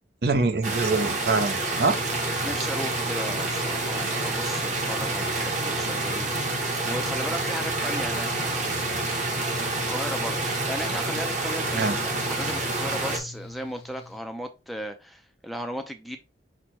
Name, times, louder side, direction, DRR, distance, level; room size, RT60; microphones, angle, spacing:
voice 1, 0.2-2.0 11.7-12.0, right 3 dB, 55° right, 0.6 m, -24 dB
sound 1, 0.6-13.2, right 2 dB, 40° right, 1.1 m, -28 dB
Mechanical fan, 1.6-14.2, left 3 dB, 60° left, 0.5 m, -39 dB
voice 2, 2.4-8.6 9.7-16.2, equal, ahead, 0.4 m, -36 dB
6.1 x 2.1 x 4.1 m
head